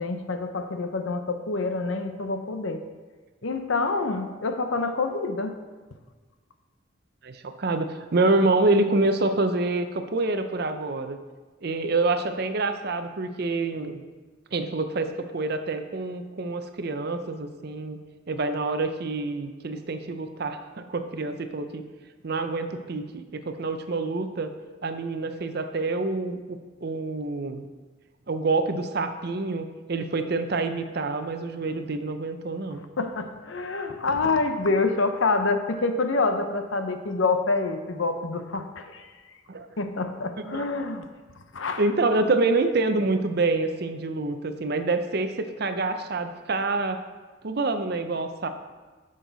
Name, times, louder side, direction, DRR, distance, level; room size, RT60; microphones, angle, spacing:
voice 1, 0.0-2.8 3.4-5.6 33.0-39.1 39.8-41.1 41.5-41.8, left 3 dB, 80° left, 7 dB, 0.8 m, -27 dB
voice 2, 7.2-11.2 11.6-14.0 14.5-18.0 18.3-21.8 22.2-24.5 24.8-27.7 28.3-32.8 39.5-39.7 40.4-40.7 41.8-47.0 47.4-48.5, right 3 dB, 55° right, 8 dB, 0.6 m, -27 dB
10.0 x 6.5 x 4.0 m, 1.3 s
head